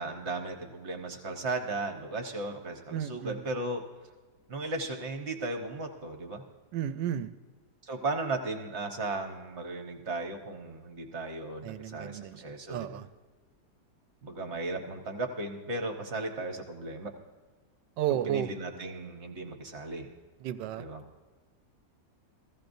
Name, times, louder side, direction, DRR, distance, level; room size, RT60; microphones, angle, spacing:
voice 1, 0.0-3.8 4.5-6.4 7.8-13.0 14.2-17.1 18.2-20.1 20.8-21.0, right 2 dB, 45° right, 4 dB, 1.1 m, -36 dB
voice 2, 2.9-3.4 6.7-7.3 11.6-13.1 18.0-18.5 20.4-20.8, right 11 dB, 85° right, 13 dB, 1.3 m, -33 dB
15.5 x 15.0 x 2.6 m, 1.3 s
omnidirectional pair, 1.9 m